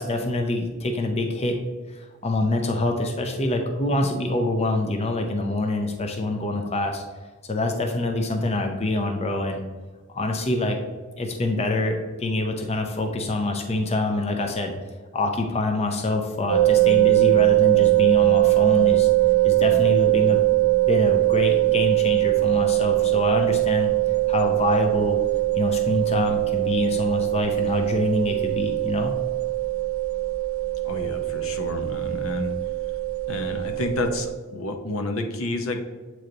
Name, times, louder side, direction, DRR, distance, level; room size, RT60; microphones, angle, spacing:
voice 1, 0.0-1.6 1.9-7.0 7.5-9.6 10.1-10.8 11.2-14.7 15.1-19.1 19.4-20.4 20.9-23.9 24.3-25.2 25.6-29.1, left 2 dB, 30° left, 3 dB, 0.5 m, -25 dB
sound 1, 16.5-34.3, right 20 dB, 70° right, 0.5 m, -21 dB
voice 2, 30.8-32.5 33.3-35.8, left 2 dB, 70° left, 5 dB, 0.8 m, -29 dB
7.9 x 3.1 x 3.9 m, 1.4 s
head